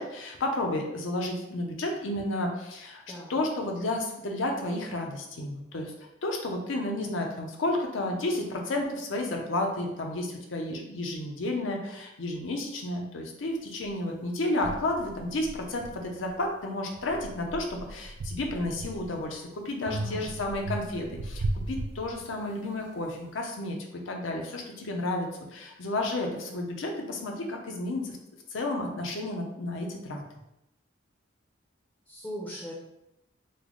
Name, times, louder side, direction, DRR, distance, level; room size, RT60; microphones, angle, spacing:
voice 1, 0.0-3.0 3.3-5.9 6.2-23.8 24.1-28.2 28.5-30.2, left 1 dB, 70° left, 2 dB, 0.6 m, -32 dB
voice 2, 3.1-3.4 19.8-20.3 32.1-32.7, equal, 5° left, -6 dB, 0.6 m, -40 dB
sound 1, 13.8-13.9 14.6-16.5 16.9-19.3 19.9-22.6, right 2 dB, 60° right, 0.3 m, -37 dB
3.2 x 2.1 x 3.7 m, 0.87 s
head